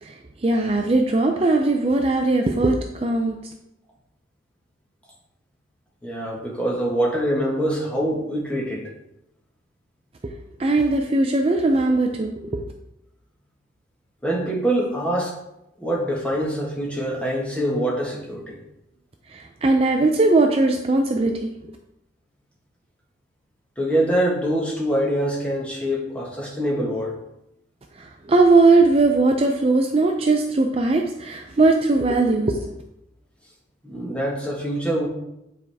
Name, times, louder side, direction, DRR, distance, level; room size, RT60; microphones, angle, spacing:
voice 1, 0.0-3.4 10.2-10.3 10.6-12.6 19.3-21.5 27.9-32.7, right 3 dB, 30° right, 3 dB, 0.4 m, -19 dB
voice 2, 6.0-8.9 14.2-15.3 15.8-18.6 23.8-27.2 33.8-35.1, right 1 dB, 5° left, -3 dB, 1.4 m, -24 dB
9.2 x 4.7 x 3.4 m, 0.86 s
head